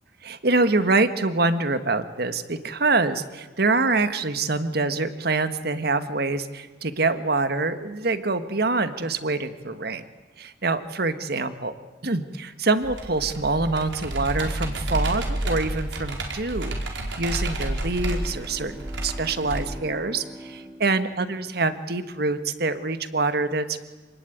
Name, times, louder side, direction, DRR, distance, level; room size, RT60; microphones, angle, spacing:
voice 1, 0.2-10.0 10.4-11.7 12.0-23.8, right 3 dB, 55° right, 11 dB, 1.6 m, -25 dB
Computer keyboard, 12.8-19.6, right 1 dB, 80° right, 4.6 m, -30 dB
Bowed string instrument, 17.9-22.4, right 1 dB, ahead, 2.0 m, -44 dB
27.5 x 20.0 x 9.3 m, 1.3 s
head